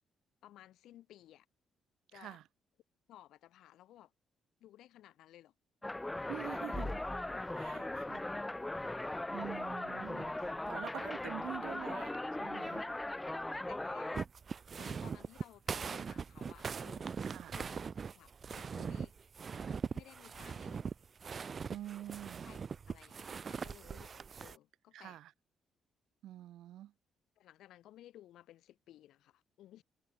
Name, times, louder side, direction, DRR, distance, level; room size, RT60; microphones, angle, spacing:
voice 1, 0.4-1.5 2.1-2.4 3.1-4.1 4.6-5.5 7.3-8.0 12.6-12.7 13.5-14.2 14.8-17.1 17.5-17.9 18.1-19.1 19.9-20.9 22.1-22.6 22.9-25.2 27.4-29.8, left 13 dB, 80° left, 3.0 m, -58 dB
sound 1, 5.8-14.3, left 2 dB, 10° left, 0.3 m, -39 dB
voice 2, 6.3-7.0 7.5-8.3 9.3-12.9 17.2-17.6 21.7-22.5 24.9-25.3 26.2-26.9, right 13 dB, 80° right, 2.9 m, -46 dB
sound 2, 14.1-24.6, right 6 dB, 45° right, 0.5 m, -41 dB
cardioid pair, 90°, 0 cm